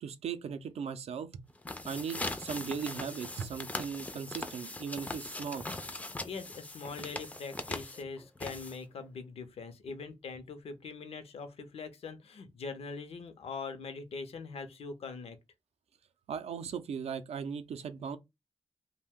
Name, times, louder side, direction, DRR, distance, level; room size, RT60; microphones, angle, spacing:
voice 1, 0.0-1.4 1.9-5.6 16.3-18.2, right 6 dB, 85° right, 0.4 m, -38 dB
sound 1, 1.5-9.0, left 2 dB, 15° left, 0.3 m, -40 dB
voice 2, 6.2-15.4, left 4 dB, 75° left, 0.6 m, -42 dB
2.7 x 2.1 x 3.5 m
wide cardioid pair, 150°, 10 cm